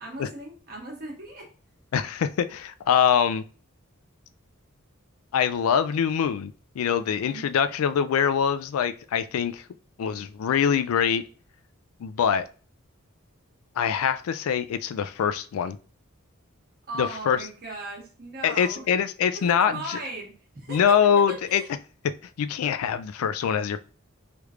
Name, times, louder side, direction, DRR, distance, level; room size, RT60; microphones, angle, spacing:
voice 1, 0.0-1.5 7.0-7.4 16.9-18.8 19.3-20.9 21.5-21.7, right 2 dB, 45° right, -2 dB, 1.4 m, -38 dB
voice 2, 1.9-3.4 5.3-9.6 10.0-11.2 12.0-12.5 13.8-15.8 16.9-17.4 18.4-20.0 20.7-21.6 22.4-23.8, left 7 dB, 85° left, 12 dB, 0.3 m, -24 dB
3.4 x 3.1 x 2.3 m, 0.38 s
head